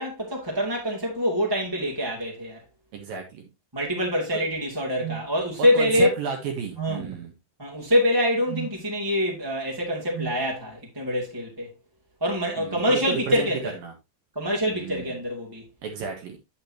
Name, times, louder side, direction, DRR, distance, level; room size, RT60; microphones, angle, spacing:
voice 1, 0.0-2.6 3.7-6.1 6.8-7.1 7.6-11.7 12.2-13.7 14.3-15.6, left 1 dB, 10° right, 1.5 m, -25 dB
voice 2, 2.9-3.5 4.3-4.4 5.6-7.3 12.6-13.9 14.6-15.2 15.8-16.4, right 5 dB, 65° right, 2.9 m, -32 dB
sound 1, 5.0-5.3 6.7-7.1 8.5-8.8 10.1-10.4, right 13 dB, 85° right, 4.0 m, -34 dB
8.6 x 8.5 x 2.8 m
omnidirectional pair, 4.8 m